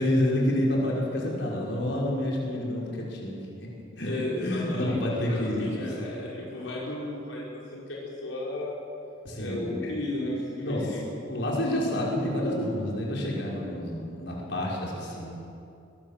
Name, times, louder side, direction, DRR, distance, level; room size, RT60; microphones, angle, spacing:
voice 1, 0.0-3.7 4.0-4.1 4.4-5.7 9.2-9.9 10.6-10.9 11.2-15.3, left 1 dB, 65° left, -3 dB, 5.8 m, -28 dB
voice 2, 4.1-8.8 9.4-11.0, left 1 dB, 80° left, -5 dB, 5.2 m, -34 dB
23.5 x 21.0 x 7.6 m, 2.6 s
head